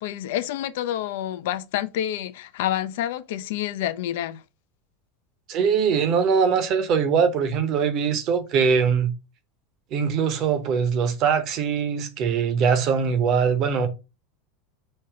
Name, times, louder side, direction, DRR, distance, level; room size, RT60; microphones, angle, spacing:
voice 1, 0.0-4.4, left 12 dB, 60° left, 0.4 m, -28 dB
voice 2, 5.5-9.1 9.9-13.9, right 6 dB, 45° right, 0.9 m, -22 dB
5.4 x 2.7 x 3.5 m
figure-of-eight pair, 80°, 0 cm